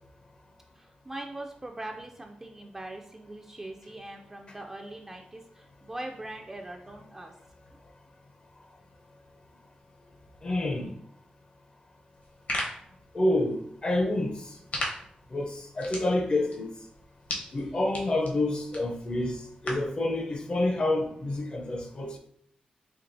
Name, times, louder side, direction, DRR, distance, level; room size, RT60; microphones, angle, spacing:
voice 1, 0.7-7.3 17.6-17.7, right 1 dB, 15° right, 0.3 m, -41 dB
voice 2, 10.4-10.9 13.1-14.6 15.3-16.7 17.5-22.2, left 1 dB, 35° left, 0.5 m, -28 dB
sound 1, 12.1-20.0, left 1 dB, 70° left, 1.0 m, -39 dB
4.5 x 3.1 x 2.5 m
wide cardioid pair, 125°, 3 cm